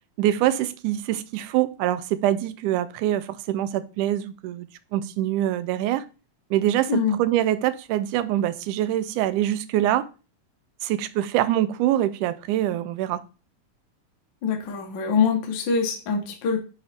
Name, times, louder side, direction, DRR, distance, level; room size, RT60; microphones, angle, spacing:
voice 1, 0.2-4.7 4.9-6.1 6.5-10.1 10.8-13.2, right 12 dB, 85° right, 2.1 m, -24 dB
voice 2, 6.9-7.2 14.4-16.6, left 5 dB, 60° left, 1.2 m, -24 dB
9.3 x 4.0 x 3.5 m
omnidirectional pair, 3.6 m